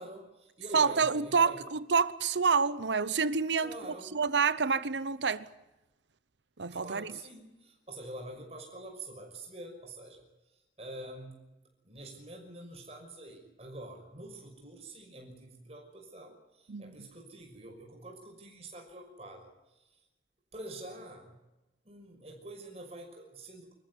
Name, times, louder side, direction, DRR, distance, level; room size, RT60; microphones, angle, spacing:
voice 1, 0.0-1.6 3.6-4.2 6.7-11.4 11.8-20.0 20.5-21.4 21.8-23.7, right 1 dB, 35° right, 6.0 m, -46 dB
voice 2, 0.7-3.7 4.1-5.5 6.6-7.1 16.7-17.1, right 5 dB, 85° right, 0.9 m, -28 dB
26.0 x 14.5 x 9.8 m
head